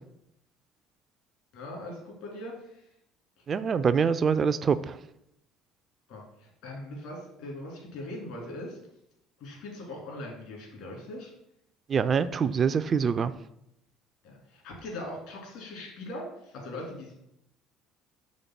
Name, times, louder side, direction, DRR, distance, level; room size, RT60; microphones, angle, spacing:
voice 1, 1.5-2.9 3.4-3.5 6.1-8.8 9.4-11.3 14.2-17.1, left 1 dB, 65° left, -1 dB, 2.5 m, -40 dB
voice 2, 3.5-5.0 11.9-13.3, right 6 dB, 40° right, 12 dB, 0.3 m, -25 dB
5.2 x 3.7 x 5.8 m, 0.79 s
figure-of-eight pair, 60°, 0 cm